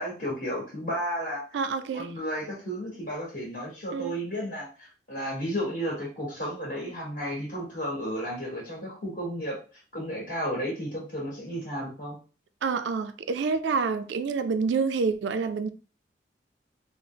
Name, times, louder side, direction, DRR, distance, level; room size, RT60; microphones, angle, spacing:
voice 1, 0.0-1.4 1.9-9.6 9.9-12.2, equal, 50° left, 1.3 m, -33 dB
voice 2, 1.5-2.1 3.9-4.1 12.6-15.7, right 5 dB, 85° right, 0.4 m, -27 dB
3.3 x 2.0 x 3.7 m
head